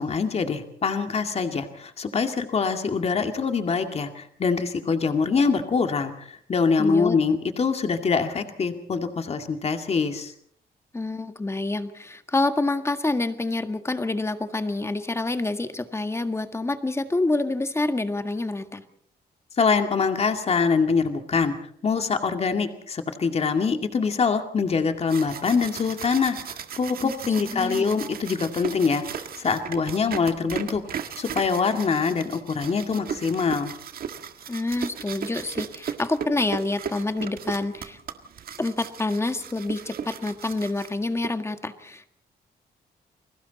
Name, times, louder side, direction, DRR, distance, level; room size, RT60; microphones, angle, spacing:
voice 1, 0.0-10.3 19.6-21.6 21.8-29.0 29.4-30.8 31.2-33.7, left 5 dB, 40° left, 6 dB, 2.3 m, -24 dB
voice 2, 6.8-7.2 10.9-18.8 27.0-27.1 27.5-27.9 34.5-38.0 38.6-42.1, left 2 dB, 15° left, 8 dB, 1.7 m, -27 dB
sound 1, 24.8-41.3, right 7 dB, 65° right, 1.8 m, -36 dB
30.0 x 22.0 x 4.1 m, 0.62 s
cardioid pair, 130°, 17 cm